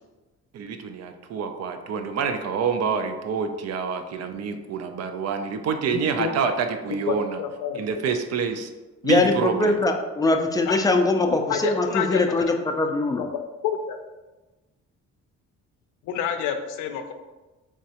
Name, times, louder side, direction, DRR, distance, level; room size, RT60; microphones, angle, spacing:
voice 1, 0.5-7.4 7.7-8.7 9.0-9.7, right 6 dB, 60° right, 7 dB, 0.5 m, -27 dB
voice 2, 5.9-6.3 6.9-7.8 10.7-10.8 11.3-12.2 13.2-13.3 13.6-14.0 16.0-17.1, left 8 dB, 85° left, 7 dB, 0.4 m, -28 dB
voice 3, 9.0-13.2, left 2 dB, 15° left, 4 dB, 0.3 m, -22 dB
3.5 x 3.1 x 2.8 m, 1.2 s
cardioid pair, 90°, 30 cm